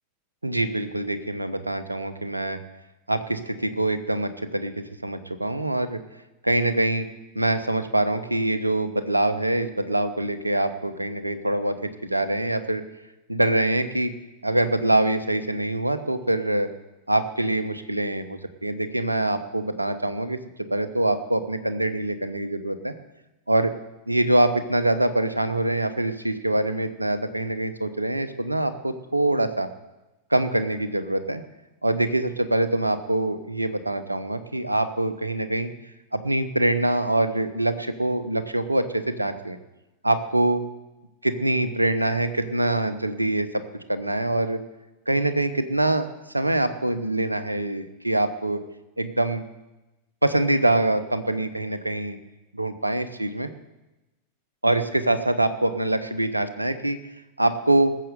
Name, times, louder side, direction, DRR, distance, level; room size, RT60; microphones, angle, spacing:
voice 1, 0.4-2.6 3.1-4.7 5.0-6.0 6.4-7.1 7.3-12.8 13.3-14.1 14.4-16.7 17.1-20.4 20.7-22.9 23.5-23.7 24.1-29.7 30.3-31.4 31.8-35.7 36.1-39.6 40.0-40.6 41.2-43.6 43.9-44.6 45.1-46.1 46.3-48.6 49.0-49.4 50.2-52.2 52.5-53.5 54.6-57.0 57.4-57.9, right 1 dB, 85° right, 11 dB, 1.1 m, -24 dB
19.5 x 7.6 x 6.9 m, 1.0 s
figure-of-eight pair, 90°, 0 cm